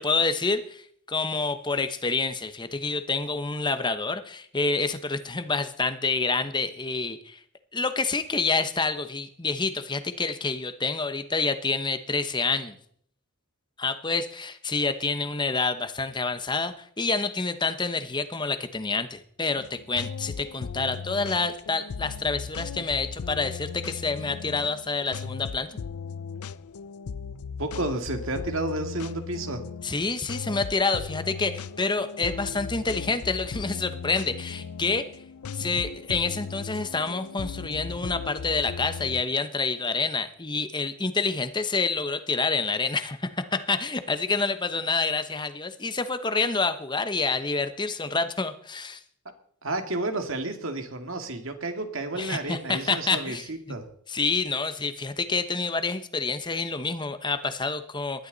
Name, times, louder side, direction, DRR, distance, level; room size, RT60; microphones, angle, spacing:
voice 1, 0.0-7.4 7.7-12.7 13.8-25.7 29.8-35.1 35.5-49.0 52.1-53.8 54.1-58.3, left 4 dB, 20° left, 10 dB, 1.0 m, -28 dB
sound 1, 19.6-39.2, left 6 dB, 90° left, 0.5 m, -37 dB
voice 2, 27.6-29.6 49.6-53.9, right 2 dB, 65° right, 6 dB, 2.3 m, -31 dB
20.0 x 13.0 x 4.1 m, 0.63 s
head